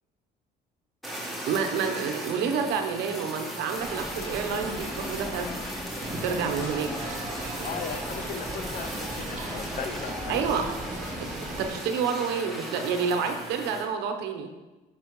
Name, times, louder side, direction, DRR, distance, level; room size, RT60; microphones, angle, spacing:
Fire, 1.0-13.9, right 1 dB, ahead, 1.5 m, -38 dB
voice 1, 1.5-5.5 6.1-7.1 10.3-10.7 11.6-14.5, right 6 dB, 85° right, 5 dB, 0.9 m, -29 dB
sound 1, 3.8-11.7, left 1 dB, 15° left, 2.7 m, -37 dB
sound 2, 6.0-11.8, right 6 dB, 50° right, 0.6 m, -42 dB
voice 2, 7.6-10.4, left 7 dB, 55° left, 10 dB, 0.6 m, -37 dB
9.5 x 6.2 x 3.1 m, 1.1 s
cardioid pair, 110°, 17 cm